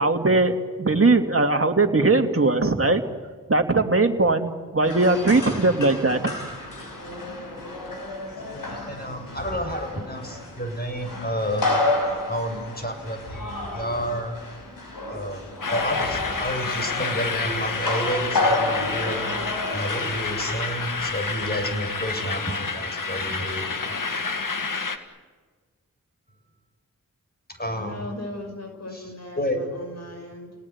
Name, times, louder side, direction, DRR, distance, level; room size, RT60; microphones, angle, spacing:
voice 1, 0.0-3.0 3.5-6.3, right 3 dB, 40° right, 5 dB, 2.6 m, -20 dB
sound 1, 4.8-20.3, left 2 dB, 85° left, 5.9 m, -30 dB
voice 2, 8.3-11.6 12.3-14.4 15.1-19.2 19.7-23.6 27.6-28.0 28.9-29.0 29.4-29.6, equal, 30° left, 4 dB, 7.8 m, -30 dB
sound 2, 15.6-25.0, left 4 dB, 70° left, 1.9 m, -29 dB
voice 3, 27.7-30.5, left 1 dB, 50° left, 3 dB, 5.8 m, -38 dB
30.0 x 19.0 x 9.8 m, 1.5 s
cardioid pair, 40°, 33 cm